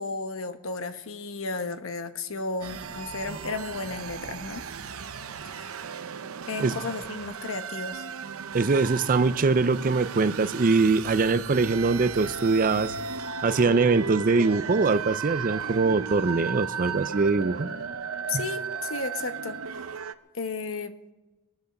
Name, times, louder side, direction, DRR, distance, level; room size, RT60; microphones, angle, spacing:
voice 1, 0.0-4.6 5.4-5.8 6.5-8.0 13.7-13.8 18.3-19.8 20.3-21.0, left 3 dB, 65° left, 9 dB, 1.0 m, -34 dB
sound 1, 2.6-20.1, right 6 dB, 75° right, 0.7 m, -35 dB
voice 2, 8.5-12.9 13.4-17.7 18.3-18.4, right 4 dB, 40° right, 14 dB, 0.5 m, -23 dB
22.5 x 8.2 x 6.6 m, 1.1 s
head